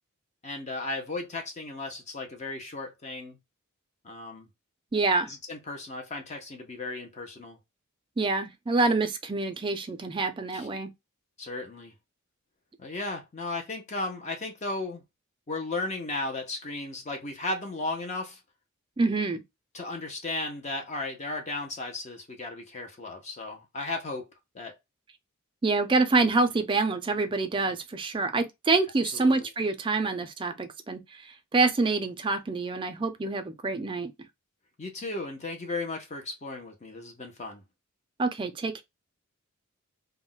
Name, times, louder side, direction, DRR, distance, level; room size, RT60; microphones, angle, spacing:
voice 1, 0.4-3.4 4.0-4.5 5.2-7.6 10.5-10.7 11.4-11.9 12.8-15.0 15.5-18.4 19.7-24.3 24.5-24.8 29.1-29.4 34.8-37.6, left 2 dB, 35° left, 0.6 m, -35 dB
voice 2, 4.9-5.3 8.2-10.9 19.0-19.4 25.6-34.1 38.2-38.8, right 3 dB, 25° right, 0.4 m, -26 dB
2.3 x 2.1 x 3.6 m
head